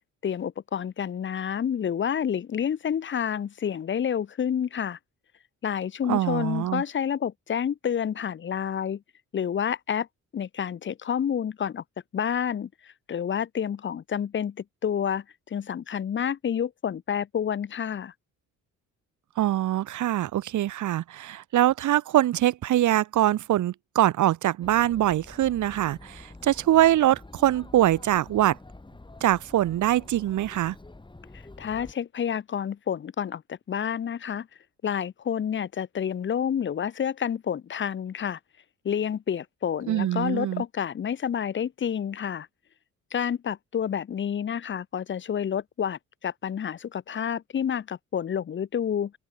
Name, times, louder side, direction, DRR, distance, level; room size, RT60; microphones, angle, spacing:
voice 1, 0.2-5.0 5.6-9.0 9.3-10.1 10.3-11.8 12.1-18.1 31.3-34.5 34.8-38.4 38.8-42.5 43.1-49.1, left 8 dB, 40° left, 0.8 m, -29 dB
voice 2, 6.1-6.8 19.4-28.6 29.2-30.8 39.9-40.6, right 13 dB, 75° right, 2.2 m, -23 dB
Chatter, 24.6-31.9, left 2 dB, 15° left, 7.7 m, -47 dB
cardioid pair, 90°, 30 cm